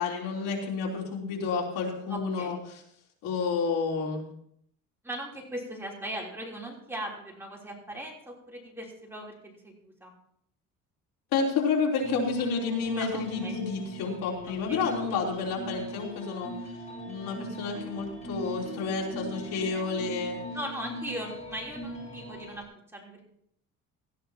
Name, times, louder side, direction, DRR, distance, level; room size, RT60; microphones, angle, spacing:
voice 1, 0.0-2.6 3.2-4.2 11.3-16.5 17.1-20.4, left 5 dB, 90° left, -3 dB, 3.7 m, -30 dB
voice 2, 2.1-2.6 5.0-10.1 13.0-13.6 14.7-14.9 19.5-19.8 20.5-22.6 22.9-23.2, right 1 dB, 5° right, -2 dB, 3.5 m, -39 dB
sound 1, 12.0-22.6, right 1 dB, 20° left, 4.6 m, -40 dB
17.5 x 14.0 x 2.9 m, 0.70 s
cardioid pair, 135°, 33 cm